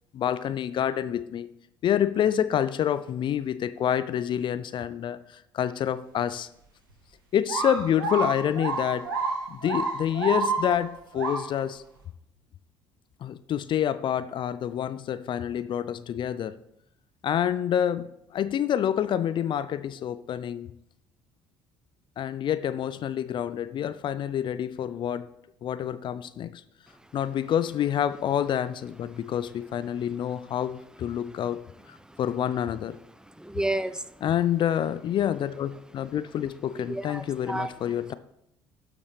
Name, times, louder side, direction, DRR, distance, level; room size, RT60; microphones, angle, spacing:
voice 1, 0.1-1.5 1.8-6.5 7.3-9.1 9.5-11.8 13.2-16.6 17.2-20.7 22.2-25.3 25.6-26.6 27.1-33.0 34.2-38.1, left 10 dB, 45° left, 14 dB, 0.5 m, -28 dB
sound 1, 7.5-10.9 11.1-11.5, right 3 dB, 90° right, 1.3 m, -29 dB
voice 2, 33.4-34.1 36.8-37.7, right 1 dB, 5° right, 13 dB, 0.6 m, -31 dB
12.0 x 7.1 x 3.4 m, 0.79 s
hypercardioid pair, 55°, 11 cm